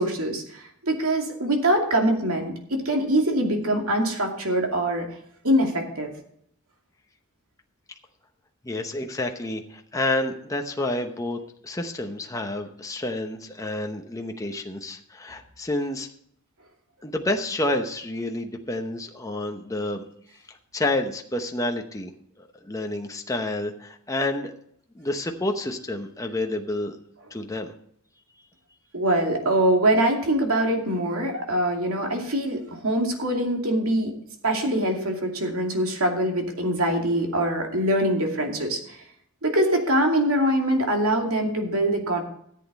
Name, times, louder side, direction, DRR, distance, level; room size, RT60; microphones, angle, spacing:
voice 1, 0.0-5.0 5.4-6.1 28.9-34.1 34.4-38.8 39.4-42.2, right 1 dB, 70° right, 2 dB, 2.5 m, -23 dB
voice 2, 8.6-16.1 17.0-20.0 20.5-22.1 22.4-24.5 24.9-27.0 27.3-27.7, left 1 dB, 15° left, 4 dB, 0.9 m, -29 dB
14.0 x 8.3 x 4.2 m, 0.68 s
head